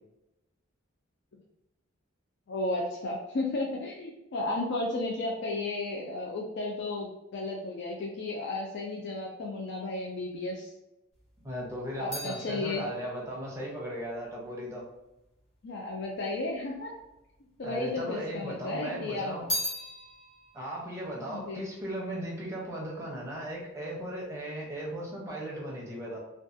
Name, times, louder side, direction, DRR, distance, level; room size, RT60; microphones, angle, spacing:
voice 1, 2.5-10.7 12.0-12.8 15.6-16.9 17.6-19.3 21.3-21.6, left 2 dB, 55° left, -1 dB, 0.4 m, -33 dB
sound 1, 11.1-15.6 16.3-17.1 17.4-18.6 18.9-22.4 22.7-23.2, left 1 dB, 35° left, 1.3 m, -40 dB
voice 2, 11.4-14.8 17.6-19.5 20.5-26.2, equal, 15° right, -4 dB, 0.6 m, -37 dB
2.5 x 2.3 x 2.4 m, 0.92 s
head